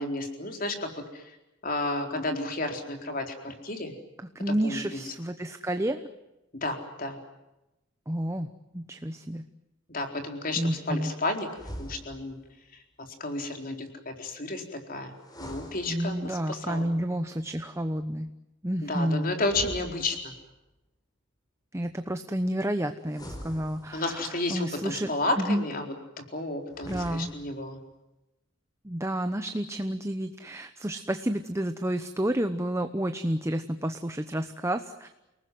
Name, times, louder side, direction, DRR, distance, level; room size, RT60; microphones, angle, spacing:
voice 1, 0.0-1.4 1.6-3.9 4.6-5.1 6.5-7.2 9.9-12.4 12.7-16.9 18.8-20.3 23.9-27.8, left 2 dB, 45° left, 4 dB, 4.2 m, -32 dB
voice 2, 4.3-6.1 8.1-8.5 8.7-9.4 10.6-11.1 15.9-18.3 18.6-19.3 21.7-25.1 25.4-25.6 26.8-27.3 28.8-35.1, right 1 dB, 15° right, 8 dB, 0.9 m, -30 dB
sound 1, 11.5-12.5 15.2-16.5 19.4-20.6 23.1-24.3 26.7-27.6, equal, 20° left, 4.6 m, -43 dB
29.5 x 19.0 x 9.5 m, 0.95 s
head